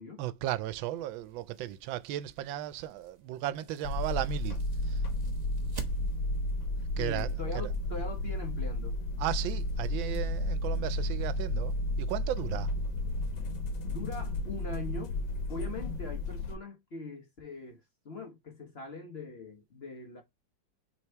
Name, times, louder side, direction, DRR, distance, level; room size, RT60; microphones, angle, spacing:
voice 1, 0.2-4.6 4.8-5.0 7.0-7.7 9.2-12.7, right 13 dB, 90° right, 1.3 m, -35 dB
sound 1, 0.9-6.5, right 2 dB, 30° right, 0.8 m, -49 dB
sound 2, 3.8-16.5, left 1 dB, 90° left, 1.8 m, -32 dB
voice 2, 7.0-9.0 13.9-15.1 15.5-17.8 18.0-20.2, left 3 dB, 40° left, 1.0 m, -42 dB
6.2 x 3.5 x 4.4 m
omnidirectional pair, 2.1 m